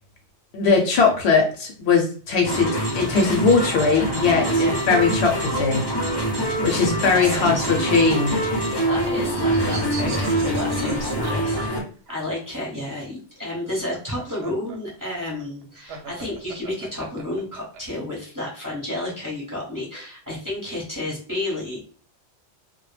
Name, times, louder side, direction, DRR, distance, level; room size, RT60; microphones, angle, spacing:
voice 1, 0.5-2.7 2.9-4.5 4.9-5.8 6.6-8.4, left 5 dB, 65° left, 2 dB, 0.8 m, -20 dB
sound 1, 2.4-11.8, right 1 dB, 35° left, 0.4 m, -24 dB
voice 2, 7.0-7.7 8.9-11.8 12.1-21.8, left 1 dB, 20° right, -5 dB, 0.7 m, -31 dB
sound 2, 8.3-12.3 13.6-17.8, right 4 dB, 65° right, 0.8 m, -39 dB
2.1 x 2.1 x 3.1 m, 0.42 s
omnidirectional pair, 1.2 m